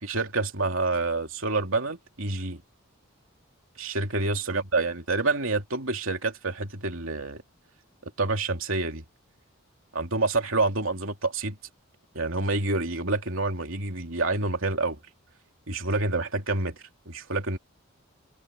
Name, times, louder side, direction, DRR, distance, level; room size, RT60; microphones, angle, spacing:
voice 1, 0.0-2.6 3.8-7.4 8.0-9.1 9.9-11.5 12.1-15.0 15.7-17.6, right 3 dB, 65° right, 3.2 m, -28 dB
head